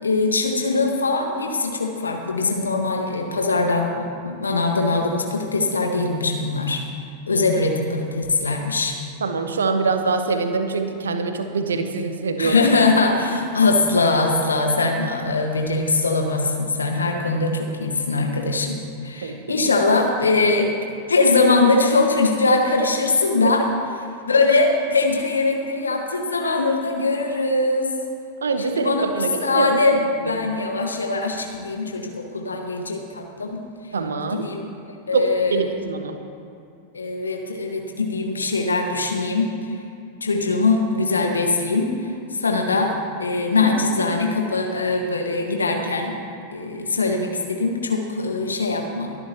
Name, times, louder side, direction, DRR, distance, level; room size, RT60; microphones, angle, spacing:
voice 1, 0.0-6.8 7.3-9.0 12.4-18.8 19.0-20.7 21.1-23.7 24.2-27.9 28.6-33.6 34.3-34.6 35.1-35.6 36.9-39.5 40.2-42.0 42.4-46.1 46.5-49.1, left 3 dB, 75° left, 2 dB, 1.6 m, -21 dB
voice 2, 9.2-12.6 19.2-19.4 23.4-23.5 28.4-29.7 30.2-30.3 33.9-34.5 35.1-36.2, right 4 dB, 70° right, 7 dB, 1.1 m, -24 dB
23.5 x 11.0 x 3.0 m, 2.6 s
figure-of-eight pair, 90°, 0 cm